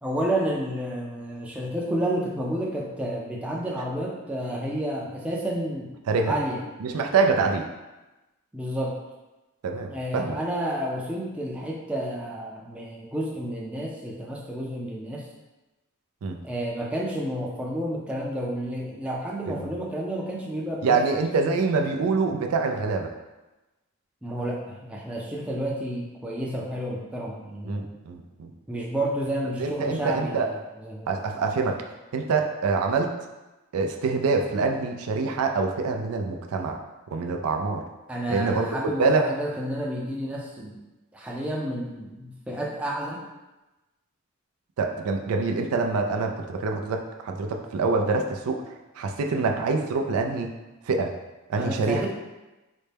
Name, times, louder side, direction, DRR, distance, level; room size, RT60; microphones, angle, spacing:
voice 1, 0.0-6.6 8.5-8.9 9.9-15.3 16.4-21.0 24.2-27.9 28.7-30.4 30.8-31.1 38.1-40.8 41.1-43.2 51.6-52.1, right 1 dB, 5° right, -3 dB, 0.4 m, -30 dB
voice 2, 6.8-7.6 9.6-10.4 16.2-16.4 19.5-19.7 20.8-23.1 27.6-28.5 29.6-30.5 31.1-31.8 32.1-33.1 33.7-36.8 37.1-37.8 38.3-38.7 39.0-39.3 44.8-50.5 50.8-51.1 51.5-52.0, right 4 dB, 75° right, 3 dB, 0.4 m, -25 dB
4.0 x 2.2 x 3.3 m, 1.1 s
head